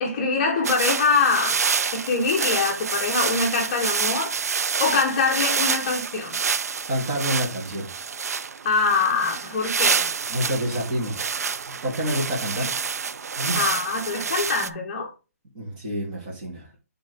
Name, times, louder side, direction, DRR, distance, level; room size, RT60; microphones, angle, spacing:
voice 1, 0.0-1.6 1.9-4.3 4.8-6.4 8.6-10.1 12.6-12.7 13.6-15.1, left 4 dB, 25° left, 0.9 m, -24 dB
sound 1, 0.6-14.7, right 6 dB, 85° right, 0.4 m, -27 dB
voice 2, 6.9-7.9 10.3-11.2 11.7-12.7 13.4-13.7 15.5-16.7, equal, 30° right, 2.6 m, -28 dB
8.7 x 3.8 x 3.4 m
hypercardioid pair, 170°, 8 cm